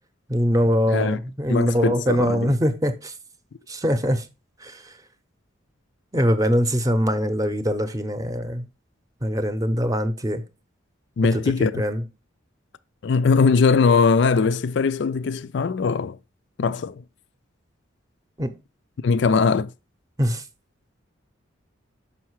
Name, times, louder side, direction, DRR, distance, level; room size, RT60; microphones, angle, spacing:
voice 1, 0.3-3.1 3.7-4.2 4.6-4.9 6.1-8.7 9.2-10.4 11.3-12.0 18.4-18.5 20.2-20.4, equal, 15° right, 0.7 m, -23 dB
voice 2, 0.9-1.2 1.5-2.5 11.2-11.8 13.0-16.2 16.6-17.0 19.0-19.7, left 5 dB, 60° left, 0.4 m, -20 dB
6.4 x 5.7 x 4.6 m
head